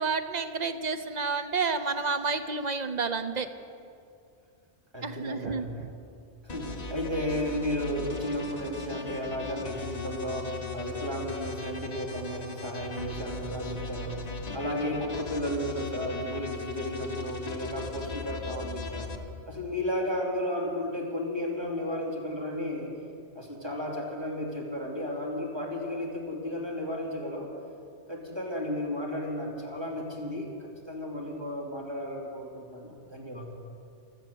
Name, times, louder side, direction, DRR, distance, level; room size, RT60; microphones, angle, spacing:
voice 1, 0.0-3.5 5.0-5.9 14.5-14.6, right 4 dB, 45° right, 9 dB, 0.7 m, -30 dB
voice 2, 4.9-5.8 6.4-19.1 19.5-22.9 23.4-27.5 28.1-33.5, left 1 dB, 20° right, -2 dB, 2.7 m, -33 dB
sound 1, 6.5-19.2, left 4 dB, 35° left, 1.2 m, -38 dB
15.5 x 12.5 x 6.8 m, 2.4 s
omnidirectional pair, 1.2 m